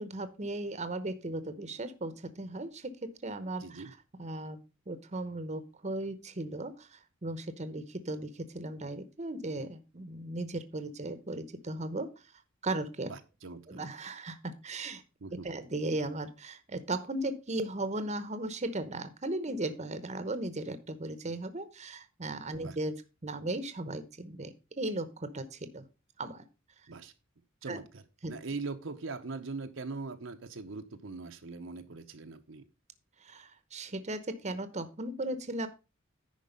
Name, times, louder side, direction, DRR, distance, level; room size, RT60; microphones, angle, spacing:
voice 1, 0.0-4.6 4.9-12.1 12.6-13.1 13.7-15.0 15.4-25.9 26.2-26.5 27.7-27.8 28.2-28.4 33.2-35.7, right 2 dB, 35° right, 12 dB, 0.9 m, -37 dB
voice 2, 3.6-3.9 13.0-13.8 15.2-15.5 22.6-22.8 26.9-27.1 27.6-32.7, right 3 dB, 65° right, 6 dB, 0.8 m, -41 dB
10.5 x 4.7 x 5.2 m, 0.30 s
head